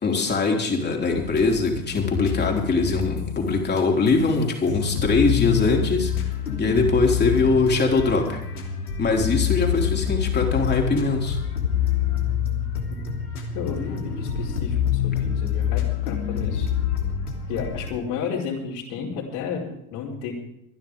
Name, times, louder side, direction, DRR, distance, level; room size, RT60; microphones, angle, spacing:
voice 1, 0.0-6.1 6.6-8.4 9.0-11.4, left 3 dB, 25° left, 1 dB, 3.6 m, -22 dB
sound 1, 1.1-4.3 4.7-17.9, left 8 dB, 85° left, 3.1 m, -26 dB
voice 2, 13.5-16.7 17.5-20.3, left 6 dB, 60° left, -4 dB, 4.9 m, -32 dB
25.5 x 11.0 x 3.6 m, 0.78 s
hypercardioid pair, 90°, 44 cm